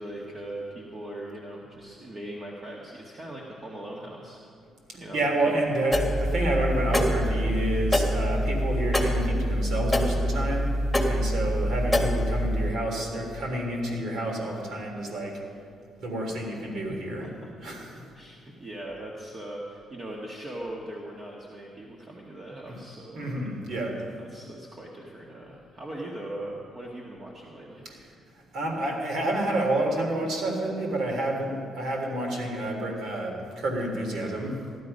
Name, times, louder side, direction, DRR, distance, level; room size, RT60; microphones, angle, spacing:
voice 1, 0.0-4.5 4.9-5.5 17.1-17.5 18.1-27.9 28.2-28.3, right 1 dB, 35° right, -2 dB, 1.8 m, -40 dB
voice 2, 4.9-10.7 11.0-15.4 16.0-17.3 17.6-18.0 23.1-24.0 27.8-28.0 28.5-34.6, right 1 dB, 70° right, 1 dB, 3.3 m, -29 dB
sound 1, 5.9-12.7, equal, 5° left, 1.8 m, -25 dB
16.0 x 11.5 x 5.5 m, 2.3 s
cardioid pair, 90°, 0 cm